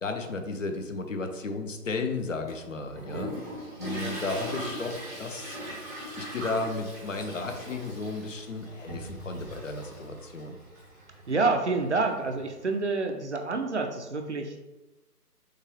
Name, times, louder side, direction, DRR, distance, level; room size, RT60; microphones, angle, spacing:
voice 1, 0.0-3.3 3.8-5.6 6.2-10.6, left 3 dB, 55° left, 6 dB, 0.7 m, -34 dB
Toilet flush, 2.5-12.7, right 1 dB, 10° right, 0.6 m, -40 dB
voice 2, 11.3-14.7, right 3 dB, 50° right, 4 dB, 0.5 m, -28 dB
6.4 x 2.4 x 3.1 m, 1.1 s
figure-of-eight pair, 145°, 47 cm